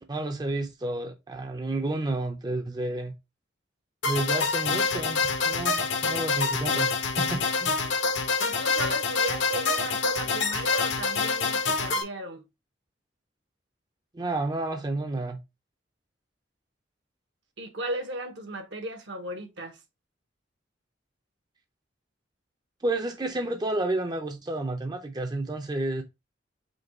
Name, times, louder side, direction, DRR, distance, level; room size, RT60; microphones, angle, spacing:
voice 1, 0.1-3.1 4.0-7.8 14.1-15.4 22.8-26.0, right 2 dB, 20° right, 0.5 m, -31 dB
sound 1, 4.0-12.0, left 4 dB, 75° left, 0.9 m, -26 dB
voice 2, 8.4-12.4 17.6-19.8, right 1 dB, 70° right, 1.1 m, -36 dB
5.1 x 2.3 x 4.1 m
head